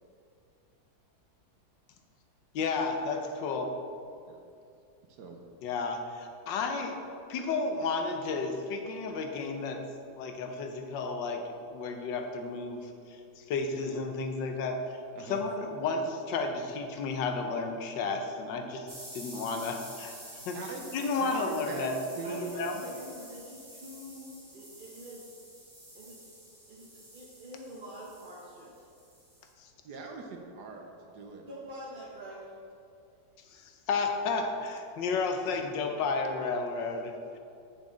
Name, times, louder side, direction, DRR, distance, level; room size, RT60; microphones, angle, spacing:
voice 1, 2.5-3.7 5.6-7.0 7.3-9.8 10.2-11.4 11.7-14.8 15.3-18.9 19.1-20.1 20.5-20.6 20.9-21.9 22.3-22.7 29.6-29.7 33.5-33.6 33.9-37.4, left 4 dB, 75° left, 4 dB, 1.4 m, -32 dB
sound 1, 18.9-29.5, right 1 dB, 10° right, 1.5 m, -49 dB
voice 2, 20.5-20.9 21.2-22.5 22.8-22.9 29.8-31.4, right 4 dB, 65° right, 2 dB, 1.3 m, -41 dB
voice 3, 22.2-25.3 25.9-26.2 26.7-28.8 31.5-32.5, right 1 dB, 40° right, -6 dB, 0.8 m, -45 dB
8.4 x 7.1 x 3.8 m, 2.5 s
omnidirectional pair, 2.0 m